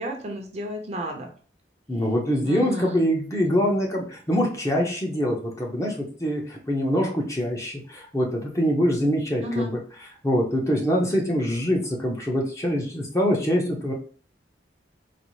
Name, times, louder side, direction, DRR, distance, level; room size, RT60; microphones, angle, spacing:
voice 1, 0.0-1.3 2.4-3.0 9.4-9.7, equal, 35° right, 2 dB, 0.6 m, -32 dB
voice 2, 1.9-9.8 10.2-13.9, equal, 15° left, -1 dB, 0.6 m, -24 dB
4.0 x 2.0 x 3.0 m, 0.42 s
head